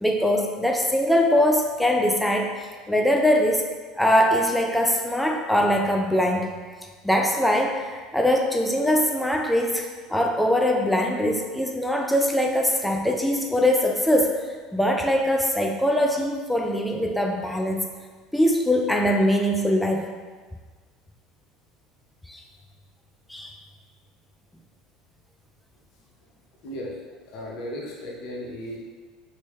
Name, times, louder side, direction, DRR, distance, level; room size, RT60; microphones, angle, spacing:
voice 1, 0.0-3.6 4.0-6.5 7.0-14.4 14.7-18.0 18.3-20.1 22.3-22.4 23.3-23.5, left 1 dB, 5° left, 1 dB, 0.4 m, -22 dB
voice 2, 26.6-27.0 27.3-28.8, equal, 65° left, -2 dB, 0.8 m, -35 dB
3.0 x 2.9 x 3.1 m, 1.4 s
hypercardioid pair, 80°, 0 cm